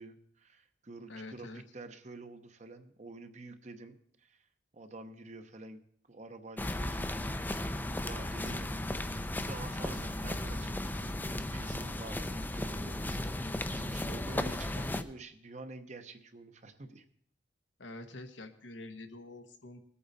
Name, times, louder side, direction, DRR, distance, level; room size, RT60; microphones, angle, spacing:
voice 1, 0.0-4.5 4.7-5.8 6.1-8.7 9.1-17.0, right 2 dB, 40° right, 9 dB, 0.9 m, -48 dB
voice 2, 1.1-1.6 8.4-8.5 9.0-9.4 17.8-19.8, left 2 dB, 85° left, 7 dB, 1.2 m, -47 dB
sound 1, 6.6-15.0, left 1 dB, 10° left, 0.5 m, -35 dB
20.0 x 8.5 x 4.1 m, 0.65 s
head